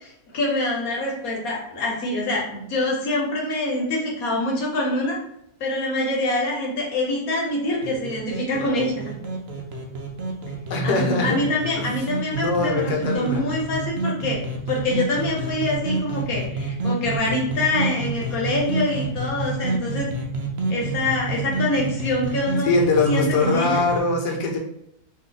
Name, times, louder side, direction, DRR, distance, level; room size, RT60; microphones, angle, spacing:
voice 1, 0.0-5.2 5.6-8.9 10.8-14.4 14.7-20.1 20.7-22.7 23.0-23.8, left 2 dB, 60° left, -2 dB, 1.2 m, -25 dB
sound 1, 7.8-24.0, right 2 dB, 85° right, 0.5 m, -28 dB
voice 2, 10.7-11.4 11.8-11.9 12.3-13.4 22.6-24.6, left 3 dB, 80° left, 1 dB, 1.2 m, -22 dB
2.7 x 2.6 x 3.8 m, 0.76 s
omnidirectional pair, 1.8 m